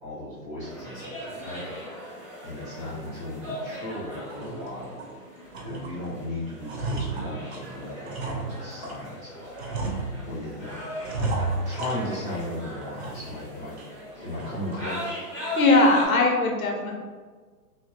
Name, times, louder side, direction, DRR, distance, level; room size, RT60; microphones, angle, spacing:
voice 1, 0.0-2.1 2.4-5.0 5.6-9.5 10.0-10.9 11.2-13.8 14.1-15.2, left 1 dB, 15° right, -13 dB, 1.4 m, -36 dB
sound 1, 0.6-16.0, equal, 5° left, 1.2 m, -39 dB
sound 2, 3.0-3.2 3.7-3.8 4.2-5.1 5.5-6.2 6.4-9.1 9.6-10.5 11.0-12.5 12.8-13.4 13.8-13.9 14.4-14.8, right 3 dB, 45° right, 0.5 m, -33 dB
voice 2, 15.6-16.9, left 2 dB, 60° left, 0 dB, 0.6 m, -20 dB
2.9 x 2.6 x 2.9 m, 1.5 s
hypercardioid pair, 160°, 47 cm